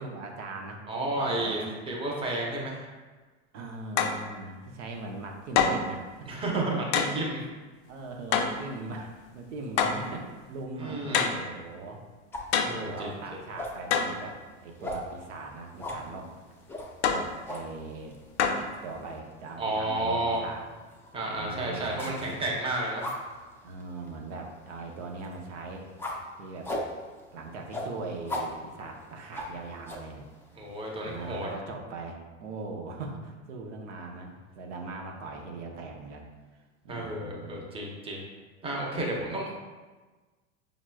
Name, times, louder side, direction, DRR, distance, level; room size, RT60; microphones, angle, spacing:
voice 1, 0.0-1.7 3.5-6.8 7.9-12.0 12.8-16.3 17.1-18.1 18.6-20.6 21.3-22.4 23.6-25.9 26.4-26.7 27.3-30.2 31.0-36.3 36.8-37.6 39.1-39.3, right 3 dB, 80° right, 1 dB, 0.7 m, -40 dB
voice 2, 0.9-1.6 1.9-2.8 6.3-7.4 10.8-11.3 12.6-13.1 19.6-20.4 21.1-23.1 30.5-31.5 36.9-38.2 38.6-39.5, right 1 dB, 15° right, -2 dB, 0.7 m, -31 dB
sound 1, 4.0-4.2 5.5-5.9 6.9-7.2 8.3-8.6 9.8-10.1 11.1-11.5 12.5-12.9 13.9-14.2 17.0-17.3 18.4-18.7, left 6 dB, 70° left, 0.5 m, -25 dB
sound 2, 12.3-31.5, left 1 dB, 5° left, 0.4 m, -42 dB
4.9 x 3.0 x 2.2 m, 1.3 s
supercardioid pair, 110°, 35 cm